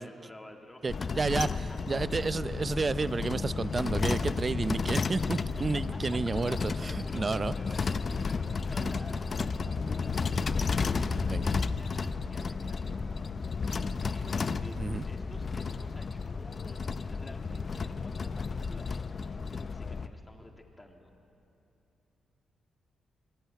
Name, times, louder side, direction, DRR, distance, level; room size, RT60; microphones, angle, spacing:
voice 1, 0.0-0.8 1.7-2.3 5.2-5.3 5.6-5.7 5.9-6.0 6.6-10.3 11.1-13.5 14.1-21.1, left 1 dB, 15° left, 3 dB, 3.5 m, -51 dB
voice 2, 0.8-1.5 1.9-7.5 8.8-8.9 11.3-11.5 14.8-15.1, right 4 dB, 35° right, 15 dB, 0.8 m, -31 dB
sound 1, 0.9-20.1, left 4 dB, 45° left, 0.9 m, -32 dB
sound 2, 3.3-8.9, right 1 dB, 20° right, 2.8 m, -48 dB
sound 3, 6.1-12.7, equal, 5° right, 2.4 m, -49 dB
28.5 x 21.0 x 9.5 m, 2.8 s
cardioid pair, 80°, 0 cm